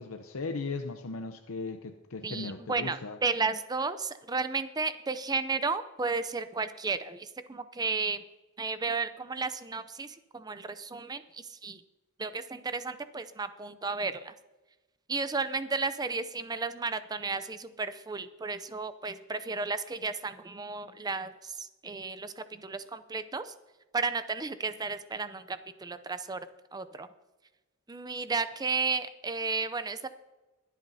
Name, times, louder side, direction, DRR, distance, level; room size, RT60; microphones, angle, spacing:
voice 1, 0.0-3.2, left 3 dB, 75° left, 6 dB, 0.7 m, -37 dB
voice 2, 2.2-8.2 8.6-11.8 12.2-14.3 15.1-23.5 23.9-26.4 26.7-27.1 27.9-30.1, right 4 dB, 20° right, 12 dB, 0.5 m, -33 dB
22.5 x 8.3 x 2.8 m, 1.1 s
head